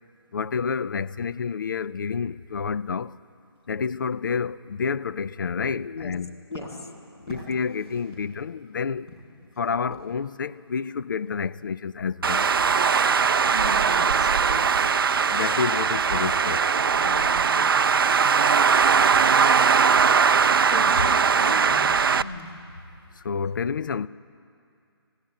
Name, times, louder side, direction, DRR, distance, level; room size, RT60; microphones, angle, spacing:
voice 1, 0.3-3.1 3.7-6.3 7.2-9.1 9.6-12.5 15.3-16.7 23.2-24.1, left 6 dB, 50° left, 0.4 m, -29 dB
voice 2, 5.8-6.1 6.5-6.7 13.5-15.3 17.0-17.8 20.7-22.5, left 2 dB, 80° left, 2.3 m, -37 dB
sound 1, 6.3-17.4 17.7-18.2 18.5-22.8, equal, 20° left, 5.6 m, -48 dB
Traffic noise roadway noise, 12.2-22.2, right 6 dB, 60° right, 0.4 m, -20 dB
19.0 x 16.5 x 9.3 m
hypercardioid pair, 165°, 14 cm